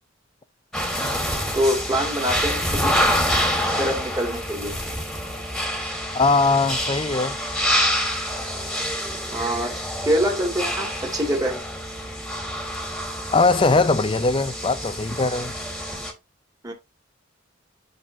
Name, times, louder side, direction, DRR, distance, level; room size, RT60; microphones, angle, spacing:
sound 1, 0.7-16.1, equal, ahead, 2.0 m, -27 dB
voice 1, 1.5-2.9 3.8-4.7 9.3-11.6 16.6-16.7, equal, 20° right, 2.5 m, -25 dB
voice 2, 6.1-7.4 13.3-15.5, left 3 dB, 25° left, 0.5 m, -20 dB
12.0 x 4.1 x 2.8 m
head